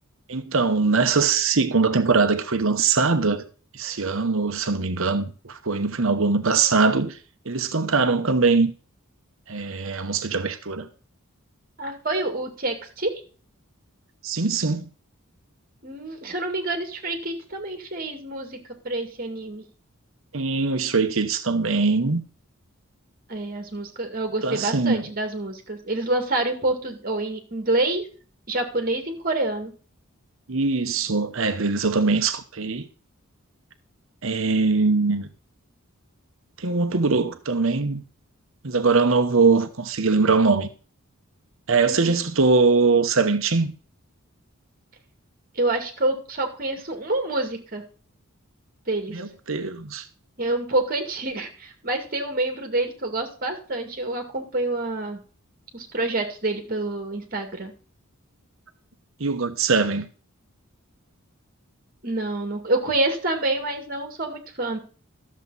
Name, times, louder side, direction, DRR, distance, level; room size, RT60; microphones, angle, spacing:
voice 1, 0.3-3.4 3.7-7.2 7.5-8.7 9.5-10.9 14.2-14.9 20.3-22.2 24.4-25.0 30.5-32.9 34.2-35.3 36.6-38.0 38.6-40.7 41.7-43.7 49.1-50.0 59.2-60.1, right 4 dB, 65° right, 1.0 m, -22 dB
voice 2, 11.8-13.1 15.8-19.6 23.3-28.1 28.5-29.7 41.9-42.2 45.5-47.8 48.9-49.2 50.4-55.2 55.7-57.7 62.0-64.8, right 2 dB, 40° right, 2.3 m, -27 dB
13.0 x 7.4 x 4.1 m
head